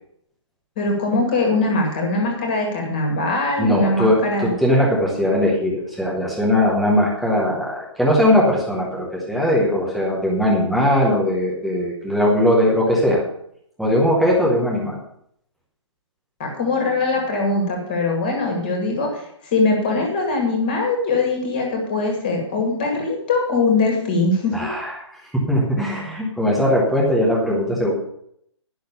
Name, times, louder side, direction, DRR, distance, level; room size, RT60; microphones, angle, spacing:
voice 1, 0.8-4.5 16.4-24.7, left 3 dB, 20° left, 2 dB, 2.0 m, -21 dB
voice 2, 3.6-13.2 13.8-15.0 24.5-24.9 25.5-27.9, left 1 dB, ahead, -4 dB, 0.8 m, -19 dB
10.5 x 6.1 x 6.7 m, 0.69 s
hypercardioid pair, 180°, 16 cm